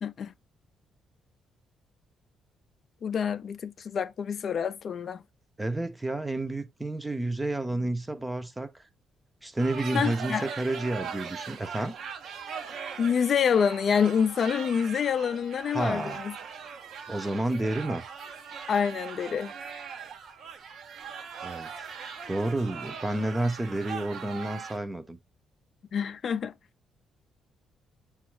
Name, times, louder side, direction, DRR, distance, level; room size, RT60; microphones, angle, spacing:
voice 1, 0.0-0.3 3.0-5.2 9.9-10.4 13.0-16.3 18.7-19.5 25.9-26.5, left 7 dB, 55° left, 0.4 m, -27 dB
voice 2, 5.6-8.7 9.4-12.0 15.7-16.2 17.1-18.0 21.4-21.9 22.3-25.2, right 2 dB, 15° right, 0.5 m, -30 dB
sound 1, 9.6-24.8, right 6 dB, 65° right, 0.6 m, -40 dB
6.8 x 2.4 x 3.0 m
cardioid pair, 90°, 0 cm